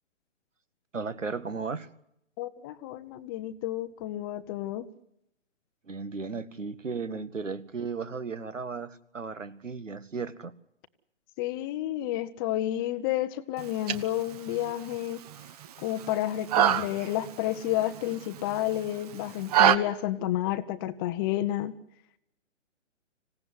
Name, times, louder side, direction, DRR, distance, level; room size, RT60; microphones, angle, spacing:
voice 1, 0.9-1.9 5.9-10.5, right 4 dB, 80° right, 15 dB, 2.0 m, -35 dB
voice 2, 2.4-4.9 11.4-15.2 15.8-21.7, left 13 dB, 20° left, 12 dB, 0.9 m, -30 dB
sound 1, 13.6-19.8, right 11 dB, 30° right, 1.2 m, -28 dB
26.0 x 17.0 x 9.7 m, 0.77 s
figure-of-eight pair, 140°, 37 cm